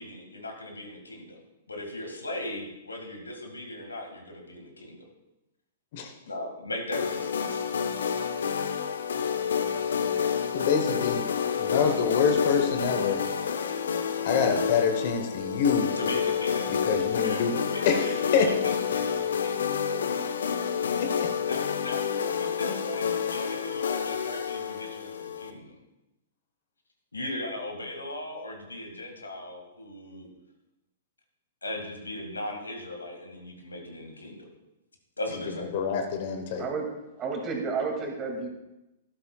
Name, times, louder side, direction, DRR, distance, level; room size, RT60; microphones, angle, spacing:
voice 1, 0.0-1.4 1.7-5.0 6.2-7.7 16.0-16.8 17.2-19.7 21.5-22.0 22.3-25.8 27.1-30.3 31.6-34.5 35.2-35.8, left 1 dB, 90° left, 3 dB, 2.0 m, -38 dB
sound 1, 6.9-25.5, left 7 dB, 70° left, 0.7 m, -29 dB
voice 2, 10.5-11.3 11.6-13.2 14.2-15.9 16.7-17.5 17.8-18.5 21.0-21.3 35.7-36.6, left 6 dB, 50° left, 6 dB, 1.1 m, -26 dB
voice 3, 36.6-38.5, right 4 dB, 25° right, 2 dB, 2.3 m, -31 dB
12.5 x 11.5 x 2.4 m, 0.94 s
figure-of-eight pair, 115°, 0 cm